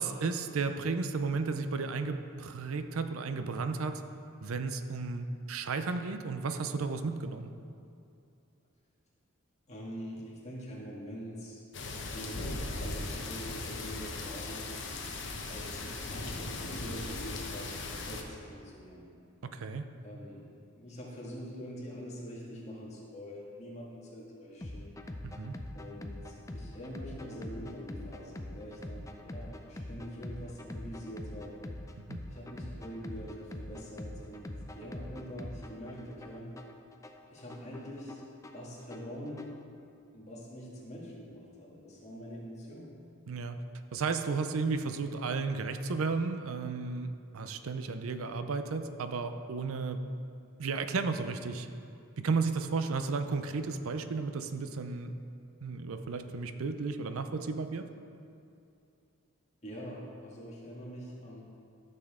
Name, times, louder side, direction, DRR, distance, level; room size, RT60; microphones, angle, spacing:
voice 1, 0.0-4.0 4.4-7.5 19.4-19.8 25.2-25.5 32.1-32.2 43.3-43.6 43.9-50.0 50.6-51.7 52.2-55.1 55.6-57.8, right 4 dB, 80° right, 9 dB, 0.5 m, -33 dB
voice 2, 9.7-11.6 12.1-14.7 15.5-19.1 20.0-24.9 25.7-31.5 32.3-36.5 37.3-38.2 38.5-39.6 40.1-43.0 59.6-61.4, equal, 30° left, -5 dB, 2.0 m, -44 dB
sound 1, 11.7-18.2, left 3 dB, 55° left, 0.9 m, -38 dB
sound 2, 24.6-39.6, left 1 dB, 15° left, 0.4 m, -44 dB
13.0 x 6.7 x 3.7 m, 2.6 s
head